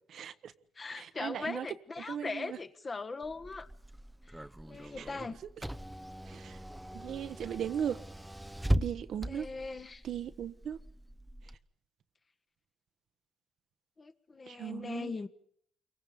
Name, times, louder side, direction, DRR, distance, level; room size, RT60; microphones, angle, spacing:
voice 1, 0.1-0.5 0.9-1.7 2.1-2.6 5.0-5.1 6.3-6.6 6.9-8.0 8.8-9.5 10.0-10.8 14.5-15.1, right 9 dB, 65° right, 1.2 m, -37 dB
voice 2, 0.8-3.7 4.6-5.4 9.1-10.0 14.0-15.3, left 4 dB, 30° left, 1.6 m, -40 dB
Car / Engine, 3.2-11.5, right 1 dB, 5° right, 0.9 m, -39 dB
29.0 x 23.5 x 5.4 m
cardioid pair, 90°, 0 cm